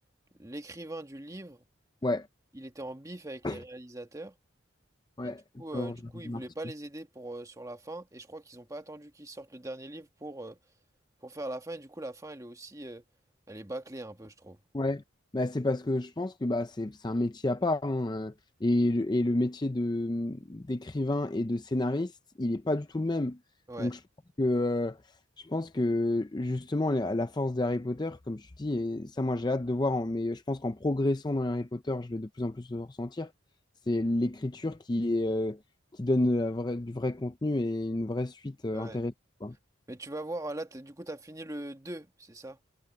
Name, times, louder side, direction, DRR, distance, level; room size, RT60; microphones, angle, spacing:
voice 1, 0.4-1.6 2.5-4.4 5.2-10.6 11.2-13.0 13.5-14.6 23.7-24.0 38.7-39.0 39.9-42.6, right 1 dB, 15° right, 1.4 m, -41 dB
voice 2, 15.3-18.3 18.6-22.1 22.4-23.4 23.8-24.0 24.4-25.0 25.4-33.3 33.9-35.6 35.9-39.1 39.4-39.5, left 1 dB, 20° left, 0.5 m, -30 dB
head